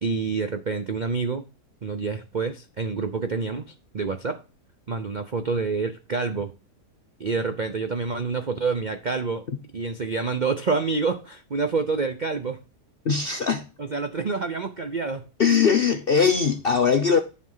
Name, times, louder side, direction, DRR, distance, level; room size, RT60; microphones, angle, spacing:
voice 1, 0.0-1.5 1.8-4.4 4.9-6.5 7.2-9.4 9.7-12.6 13.9-15.3, right 4 dB, 60° right, 0.4 m, -27 dB
voice 2, 13.0-13.7 15.4-17.2, left 6 dB, 55° left, 0.6 m, -20 dB
11.0 x 4.3 x 5.5 m
omnidirectional pair, 1.8 m